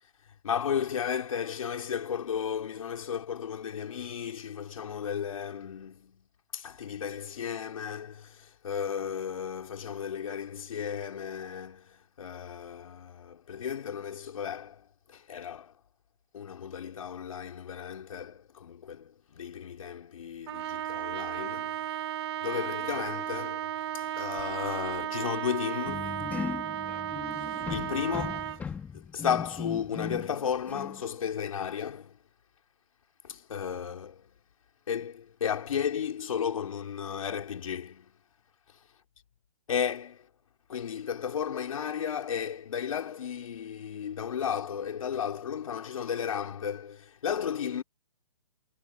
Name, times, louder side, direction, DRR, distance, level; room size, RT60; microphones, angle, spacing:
voice 1, 0.4-6.2 6.5-15.7 16.3-21.9 22.4-26.2 27.4-28.6 28.9-32.2 33.2-34.3 34.9-38.1 39.7-40.2 40.7-47.8, left 8 dB, 65° left, 3.1 m, -34 dB
Trumpet, 20.5-28.6, right 12 dB, 45° right, 2.3 m, -34 dB
sound 1, 25.9-30.4 30.7-31.0, left 6 dB, 10° left, 2.2 m, -38 dB
hypercardioid pair, 155°, 19 cm